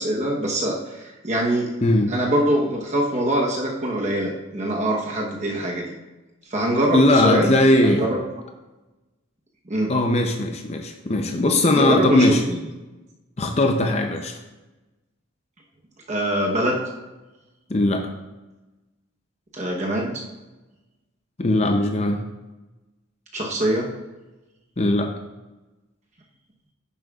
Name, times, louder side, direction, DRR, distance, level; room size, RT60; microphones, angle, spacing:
voice 1, 0.0-1.7 2.1-5.9 6.5-7.6 7.8-8.2 9.7-9.9 11.7-12.6 16.1-16.8 19.5-20.2 23.3-23.9, right 1 dB, 35° right, -1 dB, 1.0 m, -23 dB
voice 2, 1.8-2.1 6.9-8.1 9.9-12.4 13.4-14.4 17.7-18.1 21.4-22.2 24.8-25.1, left 1 dB, 30° left, 4 dB, 0.6 m, -19 dB
10.0 x 7.5 x 2.4 m, 1.1 s
head